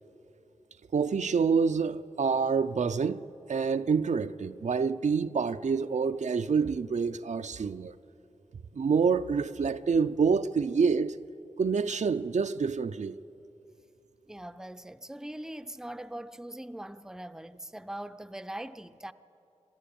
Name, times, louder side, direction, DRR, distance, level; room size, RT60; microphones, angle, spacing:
voice 1, 0.9-7.9 8.7-11.2 11.6-13.2, right 5 dB, 75° right, 0.5 m, -27 dB
voice 2, 14.3-19.1, right 1 dB, 5° right, 0.5 m, -41 dB
26.5 x 13.0 x 8.7 m
wide cardioid pair, 85°, 12 cm